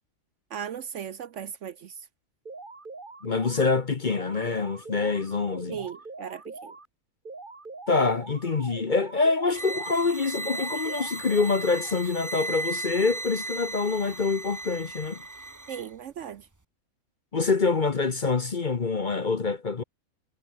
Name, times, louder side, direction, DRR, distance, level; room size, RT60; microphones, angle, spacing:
voice 1, 0.5-2.1 5.7-6.8 15.7-16.5, right 8 dB, 60° right, 0.9 m, -37 dB
sound 1, 2.5-3.7 4.1-6.9 7.3-10.1 10.5-12.0, right 3 dB, 35° right, 2.3 m, -43 dB
voice 2, 3.2-5.8 7.9-15.2 17.3-19.8, left 4 dB, 35° left, 1.0 m, -26 dB
sound 2, 9.5-15.9, right 2 dB, 15° right, 0.9 m, -36 dB
omnidirectional pair, 1.6 m